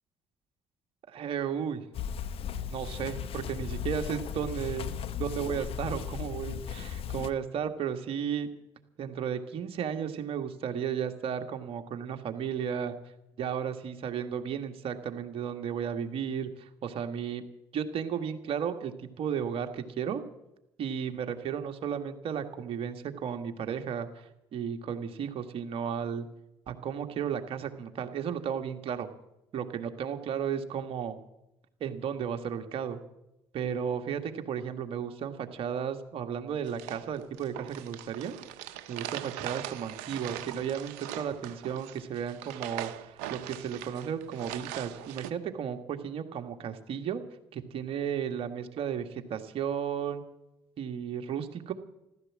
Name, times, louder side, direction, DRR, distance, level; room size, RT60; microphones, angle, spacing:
voice 1, 1.1-1.8 2.7-8.5 9.0-12.9 13.4-17.4 17.7-18.9 19.2-20.2 20.8-24.2 24.5-26.2 26.7-29.1 29.5-31.2 31.8-33.0 33.5-38.3 38.9-47.2 47.5-50.2 50.8-51.7, right 8 dB, 60° right, 6 dB, 1.8 m, -34 dB
sound 1, 1.9-7.3, left 8 dB, 60° left, 1.0 m, -36 dB
sound 2, 36.7-45.3, right 12 dB, 85° right, 0.9 m, -41 dB
15.0 x 13.0 x 7.5 m, 0.88 s
hypercardioid pair, 60°, 11 cm